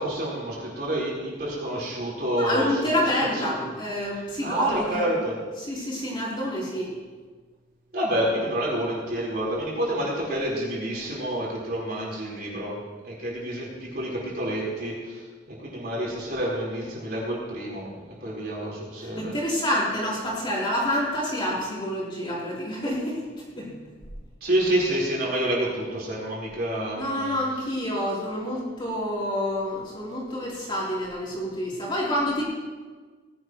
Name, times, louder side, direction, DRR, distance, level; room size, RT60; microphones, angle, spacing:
voice 1, 0.0-2.7 3.4-3.7 4.4-5.4 7.9-12.8 13.0-19.3 24.4-27.4, right 1 dB, 55° right, -5 dB, 4.3 m, -28 dB
voice 2, 2.4-5.1 5.6-6.9 19.0-23.2 23.6-23.9 27.0-32.4, equal, 25° left, -6 dB, 3.6 m, -28 dB
19.0 x 11.0 x 3.1 m, 1.4 s
head